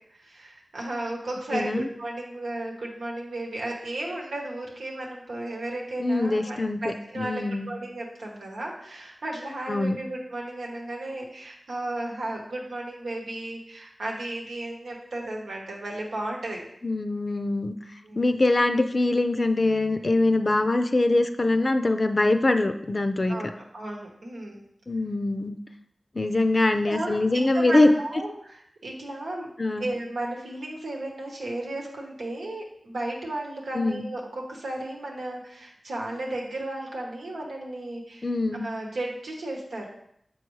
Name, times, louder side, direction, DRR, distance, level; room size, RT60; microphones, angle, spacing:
voice 1, 0.1-16.6 18.0-18.4 23.3-24.6 26.9-29.5 29.8-38.3 38.6-39.9, right 1 dB, 90° right, -1 dB, 1.2 m, -34 dB
voice 2, 1.5-1.9 6.0-7.7 9.7-10.0 16.8-17.8 18.2-23.4 24.9-25.6 26.1-27.9 29.6-29.9 33.7-34.0 38.2-38.7, left 2 dB, 45° left, 8 dB, 0.5 m, -23 dB
6.6 x 4.6 x 3.2 m, 0.73 s
cardioid pair, 45°, 0 cm